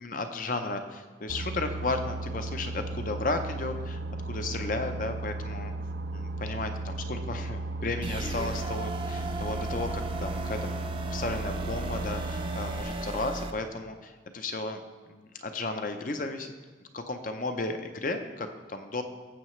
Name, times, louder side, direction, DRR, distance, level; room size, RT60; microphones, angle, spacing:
voice 1, 0.0-4.0 4.3-5.7 6.1-10.7 11.1-14.8 15.1-16.5 16.9-19.0, left 3 dB, 45° left, 7 dB, 0.7 m, -34 dB
Boat Water vehicle, 1.3-12.8, right 2 dB, 85° right, 0.5 m, -35 dB
sound 1, 8.0-13.5, right 2 dB, 30° right, 0.5 m, -36 dB
14.5 x 7.4 x 3.2 m, 1.4 s
head